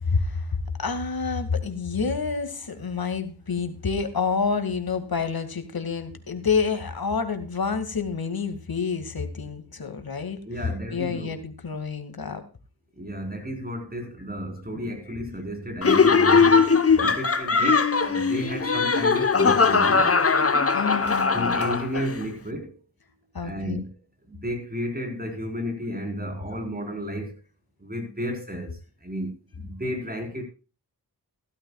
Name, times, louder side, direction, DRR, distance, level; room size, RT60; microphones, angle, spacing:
voice 1, 0.0-10.4 10.9-12.4 14.7-14.9 20.7-21.6 23.3-23.8, left 5 dB, 65° left, 2.2 m, -28 dB
voice 2, 10.4-11.3 12.9-20.2 21.3-22.8 23.4-23.9 24.3-27.4 27.8-29.3 29.5-30.4, equal, 25° right, 4.4 m, -33 dB
Laughter, 15.8-22.1, left 5 dB, 35° left, 1.0 m, -20 dB
16.0 x 13.0 x 2.4 m
wide cardioid pair, 100°, 39 cm